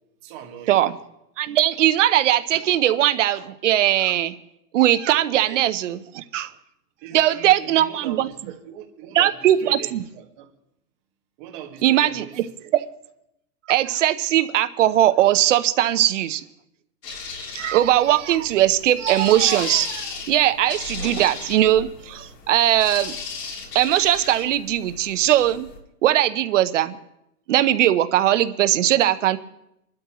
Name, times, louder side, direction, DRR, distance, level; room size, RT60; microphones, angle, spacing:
voice 1, 0.2-0.8 5.4-5.6 7.0-10.5 11.4-12.7, right 9 dB, 30° right, 1 dB, 1.8 m, -39 dB
voice 2, 1.4-4.3 4.7-6.5 7.1-8.3 9.1-10.0 11.8-12.2 12.7-12.8 13.7-16.4 17.5-23.2 23.7-25.7 26.0-27.0 27.5-29.4, right 13 dB, 50° right, 11 dB, 0.8 m, -19 dB
sound 1, 17.0-25.8, left 4 dB, 80° left, 3.2 m, -36 dB
26.0 x 12.5 x 3.1 m, 0.83 s
hypercardioid pair, 165°, 48 cm